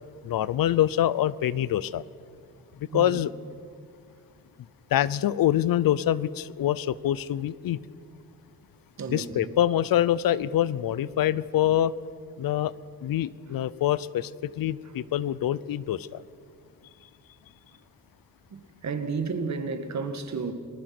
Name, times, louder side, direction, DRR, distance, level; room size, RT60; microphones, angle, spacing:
voice 1, 0.2-2.0 2.9-3.3 4.9-7.8 9.1-11.9 12.4-12.7 13.0-16.1, left 12 dB, 75° left, 0.7 m, -25 dB
voice 2, 9.0-9.5 18.5-20.5, right 5 dB, 50° right, 1.9 m, -32 dB
30.0 x 19.5 x 6.0 m
wide cardioid pair, 175°, 35 cm